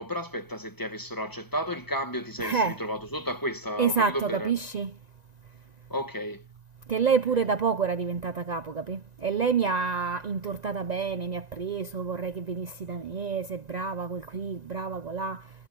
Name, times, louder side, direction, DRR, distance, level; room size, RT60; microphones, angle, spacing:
voice 1, 0.0-4.5 5.9-6.4, equal, 20° left, 1.4 m, -32 dB
voice 2, 2.4-2.8 3.8-4.9 6.9-15.4, right 5 dB, 45° right, 0.7 m, -28 dB
omnidirectional pair, 1.2 m